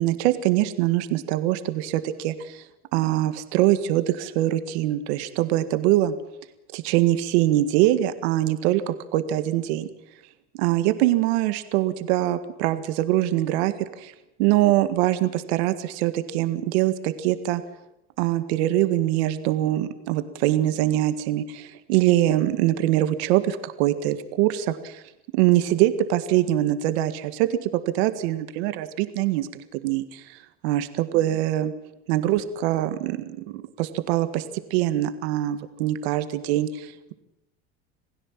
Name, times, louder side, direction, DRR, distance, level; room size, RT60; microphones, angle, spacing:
voice 1, 0.0-2.6 2.9-6.1 6.7-9.9 10.5-14.1 14.4-17.6 18.2-25.0 25.3-30.4 30.6-31.7 32.1-34.4 34.7-37.1, right 14 dB, 80° right, 10 dB, 1.8 m, -23 dB
27.0 x 17.0 x 7.4 m, 0.88 s
supercardioid pair, 100°, 32 cm